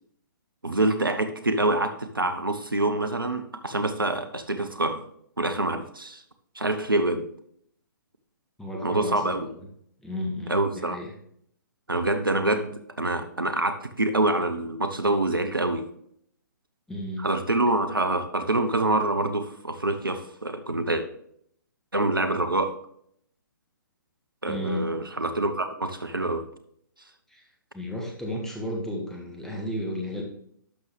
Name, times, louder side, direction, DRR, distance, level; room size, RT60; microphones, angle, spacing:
voice 1, 0.6-5.0 5.4-6.2 6.5-7.2 8.8-9.4 10.5-11.0 11.9-15.8 17.2-21.0 21.9-22.7 24.4-26.4, right 2 dB, 85° right, 9 dB, 0.9 m, -26 dB
voice 2, 8.6-9.6 10.0-11.1 16.9-17.3 24.5-24.8 27.3-27.5 27.7-30.2, left 1 dB, 5° left, -1 dB, 1.6 m, -33 dB
11.5 x 6.1 x 3.4 m, 0.68 s
figure-of-eight pair, 130°, 11 cm